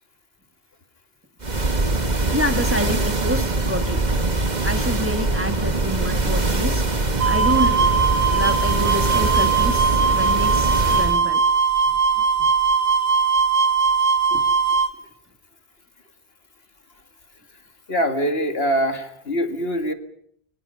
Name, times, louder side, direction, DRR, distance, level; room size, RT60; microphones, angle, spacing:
sound 1, 1.4-11.2, right 2 dB, 45° right, 1.8 m, -22 dB
voice 1, 2.3-4.0 4.6-6.8 7.3-7.8 8.3-11.4 14.3-14.4, equal, 10° right, 6 dB, 1.9 m, -27 dB
sound 2, 7.2-14.9, right 5 dB, 60° right, 2.0 m, -20 dB
voice 2, 17.9-19.9, equal, 70° left, 6 dB, 2.3 m, -23 dB
29.5 x 24.5 x 5.7 m, 0.67 s
omnidirectional pair, 1.1 m